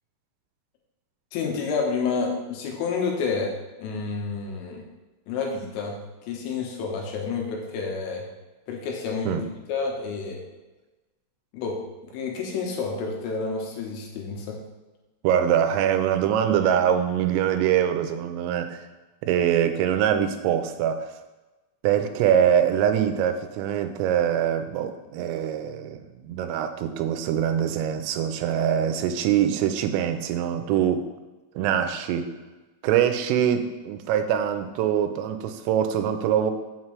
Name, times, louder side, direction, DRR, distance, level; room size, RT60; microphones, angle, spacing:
voice 1, 1.3-3.5 3.8-4.9 5.3-8.3 8.7-10.4 11.5-14.6, left 4 dB, 85° left, 0 dB, 3.8 m, -29 dB
voice 2, 15.2-18.8 19.2-21.1 21.8-31.1 31.6-32.3 32.8-36.5, right 9 dB, 90° right, 7 dB, 3.3 m, -23 dB
8.0 x 7.4 x 3.2 m, 1.2 s
omnidirectional pair, 5.7 m